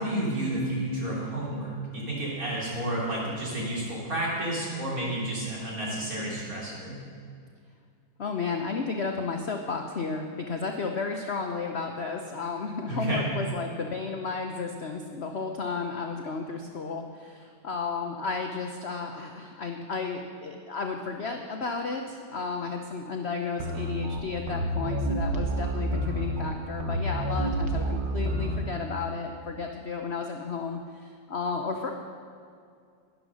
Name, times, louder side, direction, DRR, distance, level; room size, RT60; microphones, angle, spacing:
voice 1, 0.0-7.0 12.9-13.2, right 1 dB, 45° right, -5 dB, 3.8 m, -31 dB
voice 2, 8.2-31.9, left 4 dB, 60° left, 3 dB, 0.6 m, -33 dB
sound 1, 23.6-28.6, right 1 dB, 65° right, 1.8 m, -29 dB
11.5 x 11.0 x 6.3 m, 2.3 s
omnidirectional pair, 2.2 m